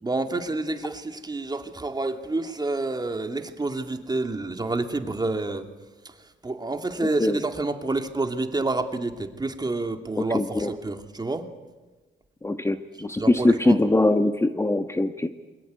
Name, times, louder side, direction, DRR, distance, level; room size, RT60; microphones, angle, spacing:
voice 1, 0.0-5.7 6.4-11.5 13.2-13.8, right 2 dB, 20° right, 6 dB, 2.6 m, -28 dB
voice 2, 10.3-10.7 12.4-15.3, left 2 dB, 15° left, 8 dB, 1.2 m, -22 dB
27.0 x 22.5 x 9.5 m, 1.2 s
cardioid pair, 90°, 20 cm